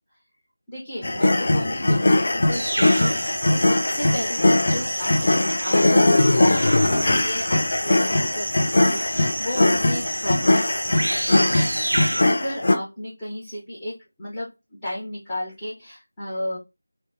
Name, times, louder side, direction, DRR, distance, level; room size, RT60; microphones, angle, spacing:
voice 1, 0.7-11.4 12.0-14.5 14.8-16.6, left 1 dB, 15° left, -10 dB, 0.9 m, -33 dB
sound 1, 1.0-12.8, left 2 dB, 45° left, 0.4 m, -20 dB
sound 2, 2.5-12.2, right 1 dB, 70° right, 0.4 m, -29 dB
2.7 x 2.1 x 2.7 m, 0.24 s
figure-of-eight pair, 170°, 0 cm